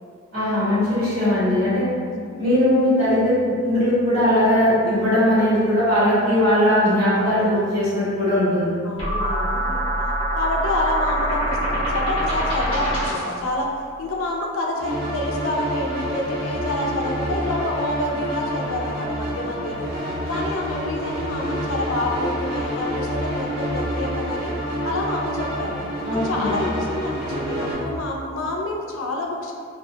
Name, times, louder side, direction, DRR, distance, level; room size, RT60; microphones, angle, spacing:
voice 1, 0.3-1.9 2.4-8.7 26.0-26.5, left 1 dB, 85° right, -13 dB, 1.2 m, -19 dB
voice 2, 8.8-9.9 10.3-13.7 14.0-19.9 20.3-24.5 24.8-25.8 26.2-29.5, left 1 dB, 75° left, 0 dB, 0.4 m, -28 dB
sound 1, 9.0-13.4, right 1 dB, 25° left, 0.7 m, -24 dB
sound 2, 14.8-27.7, equal, 45° right, 0.8 m, -28 dB
2.3 x 2.2 x 2.7 m, 2.1 s
head